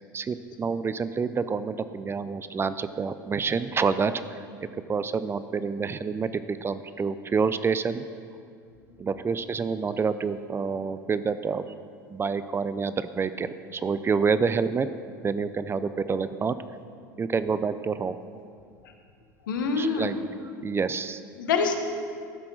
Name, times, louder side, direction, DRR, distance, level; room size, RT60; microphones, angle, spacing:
voice 1, 0.1-4.5 4.9-8.0 9.0-11.7 12.1-14.9 15.2-16.6 17.2-18.2 19.7-20.1 20.6-21.2, right 5 dB, 20° right, 13 dB, 0.5 m, -28 dB
voice 2, 19.4-20.2 21.3-21.7, left 5 dB, 75° left, 5 dB, 1.2 m, -26 dB
13.0 x 6.0 x 6.3 m, 2.3 s
hypercardioid pair, 80°, 11 cm